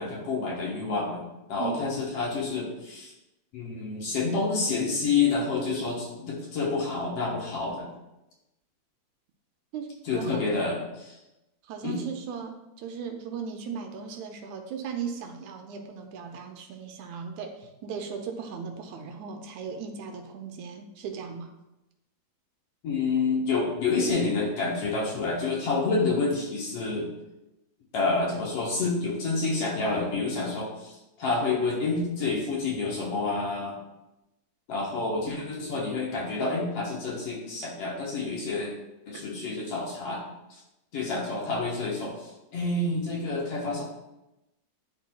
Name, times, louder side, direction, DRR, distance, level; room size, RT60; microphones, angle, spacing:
voice 1, 0.0-3.1 3.5-7.9 10.1-11.2 11.8-12.0 22.8-27.1 27.9-33.8 34.7-38.7 39.1-40.2 40.9-43.8, left 3 dB, 60° left, -3 dB, 2.0 m, -28 dB
voice 2, 1.6-1.9 9.7-10.7 11.7-21.5 39.1-39.2, right 6 dB, 80° right, 4 dB, 1.9 m, -37 dB
11.0 x 4.0 x 2.3 m, 0.95 s
omnidirectional pair, 3.4 m